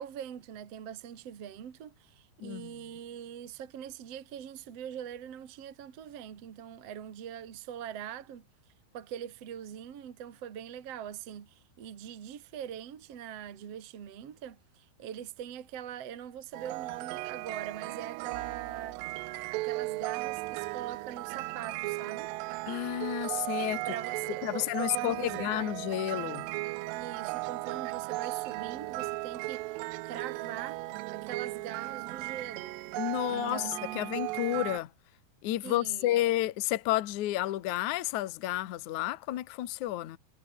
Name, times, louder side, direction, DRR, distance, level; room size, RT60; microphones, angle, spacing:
voice 1, 0.0-8.4 8.9-19.0 19.3-22.3 23.9-25.7 26.9-29.6 30.0-32.8 33.3-34.1 35.6-36.3, right 9 dB, 45° right, 2.2 m, -42 dB
voice 2, 2.4-2.7 22.7-23.9 24.4-26.5 33.0-34.9 35.4-40.2, left 14 dB, 75° left, 1.7 m, -31 dB
sound 1, 16.5-34.8, right 21 dB, 85° right, 2.4 m, -36 dB
omnidirectional pair, 5.5 m